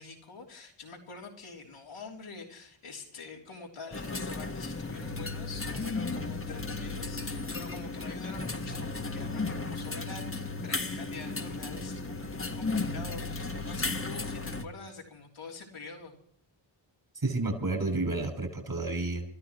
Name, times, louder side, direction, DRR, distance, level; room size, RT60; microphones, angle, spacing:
voice 1, 0.0-10.3 10.6-16.1, left 4 dB, 85° left, 0 dB, 3.4 m, -46 dB
sound 1, 3.9-14.7, left 3 dB, 25° left, 1.7 m, -35 dB
voice 2, 17.1-19.2, right 2 dB, 45° right, 5 dB, 6.4 m, -30 dB
28.0 x 13.5 x 3.1 m, 0.63 s
cardioid pair, 40°, 49 cm